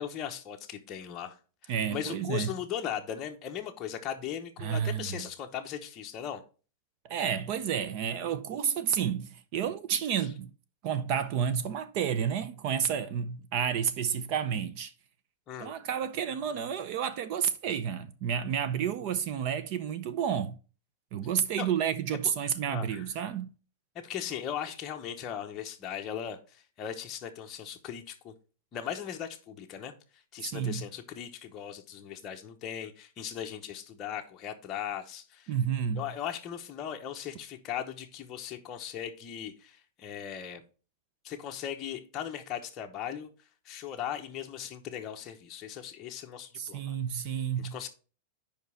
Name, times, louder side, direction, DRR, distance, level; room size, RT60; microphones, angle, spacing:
voice 1, 0.0-1.4 1.6-6.4 15.5-15.7 21.6-21.7 22.7-23.0 23.9-28.3 28.7-29.9 30.3-35.5 35.9-40.6 41.2-43.3 43.6-46.9 47.6-47.9, left 9 dB, 20° left, 0.9 m, -38 dB
voice 2, 1.7-2.5 4.6-5.3 7.0-10.5 10.8-14.9 15.6-20.6 21.1-23.5 30.4-30.9 35.5-36.1 46.6-47.8, right 8 dB, 35° right, 0.5 m, -30 dB
5.3 x 5.2 x 6.3 m
supercardioid pair, 175°, 0 cm